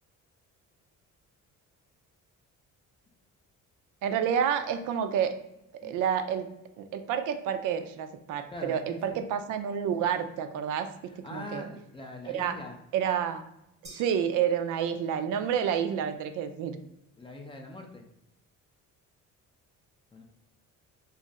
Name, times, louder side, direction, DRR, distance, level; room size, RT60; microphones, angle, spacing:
voice 1, 4.0-5.3 5.8-6.5 6.8-10.9 11.3-11.6 12.3-12.5 12.9-13.4 13.8-16.8, right 8 dB, 75° right, 8 dB, 0.5 m, -29 dB
voice 2, 8.5-9.2 11.1-12.8 15.3-15.4 17.2-18.1 20.1-20.2, left 2 dB, 15° left, 2 dB, 0.4 m, -43 dB
sound 1, 13.8-15.3, right 1 dB, 20° right, 0.7 m, -53 dB
2.5 x 2.4 x 3.9 m, 0.82 s
cardioid pair, 145°, 31 cm